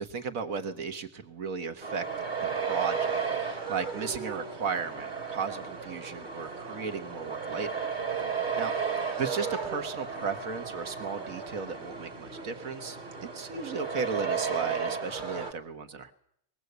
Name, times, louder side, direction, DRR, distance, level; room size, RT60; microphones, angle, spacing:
voice 1, 0.0-2.1 2.4-7.8 8.2-8.7 9.2-16.1, right 5 dB, 70° right, 7 dB, 1.9 m, -35 dB
sound 1, 1.8-15.5, right 6 dB, 35° right, 1.6 m, -34 dB
21.5 x 17.0 x 8.1 m, 0.72 s
omnidirectional pair, 1.5 m